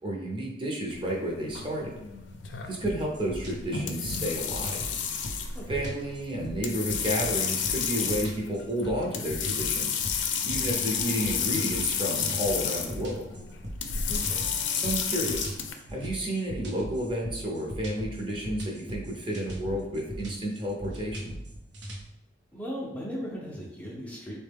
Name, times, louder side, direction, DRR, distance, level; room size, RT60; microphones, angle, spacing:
voice 1, 0.0-1.9 2.7-4.8 5.7-13.3 14.7-15.5 15.9-21.3, right 1 dB, 30° right, -2 dB, 0.6 m, -31 dB
sound 1, 0.9-15.7, left 7 dB, 85° left, 0.4 m, -31 dB
sound 2, 2.8-22.0, right 1 dB, 80° right, 0.7 m, -39 dB
voice 2, 5.5-5.9 14.1-14.5 22.5-24.4, equal, 10° left, -4 dB, 0.5 m, -37 dB
3.6 x 2.2 x 3.4 m, 0.89 s
head